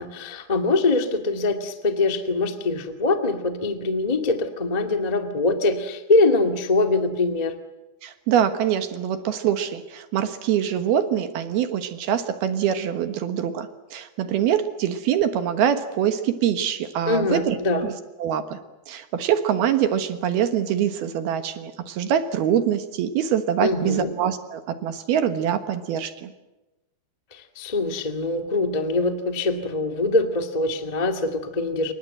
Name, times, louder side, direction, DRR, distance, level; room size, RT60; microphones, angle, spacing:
voice 1, 0.0-7.6 17.0-17.9 23.6-24.1 27.3-31.9, left 2 dB, 45° left, 6 dB, 0.5 m, -23 dB
voice 2, 8.0-17.9 18.2-18.6 18.9-26.3, right 9 dB, 70° right, 9 dB, 3.0 m, -24 dB
28.5 x 24.5 x 7.8 m, 1.0 s
omnidirectional pair, 5.1 m